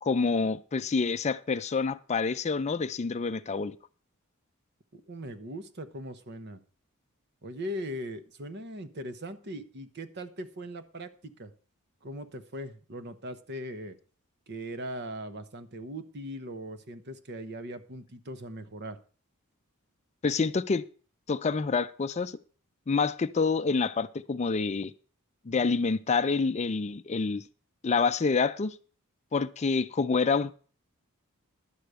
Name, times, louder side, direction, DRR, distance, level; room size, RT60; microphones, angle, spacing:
voice 1, 0.0-3.8 20.2-20.8 21.3-22.4 22.9-24.9 25.5-27.4 27.8-28.8 29.3-30.5, left 4 dB, 30° left, 0.4 m, -27 dB
voice 2, 4.9-6.6 7.4-11.5 12.0-14.0 14.5-19.0, equal, 50° right, 1.0 m, -40 dB
11.5 x 5.0 x 8.0 m
head